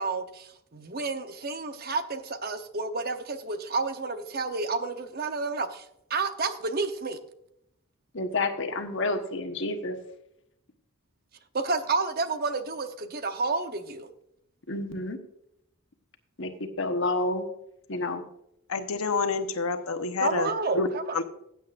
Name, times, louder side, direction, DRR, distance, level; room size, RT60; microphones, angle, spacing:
voice 1, 0.0-5.8 6.1-7.2 11.5-14.1 20.2-21.2, right 3 dB, 45° right, 8 dB, 0.9 m, -30 dB
voice 2, 8.1-10.0 14.7-15.2 16.4-16.5 16.8-17.5 17.9-18.2, left 2 dB, 60° left, 5 dB, 1.2 m, -29 dB
voice 3, 18.7-20.5 20.7-20.9 21.1-21.2, left 4 dB, 80° left, 8 dB, 1.0 m, -27 dB
15.5 x 8.4 x 2.5 m, 0.78 s
head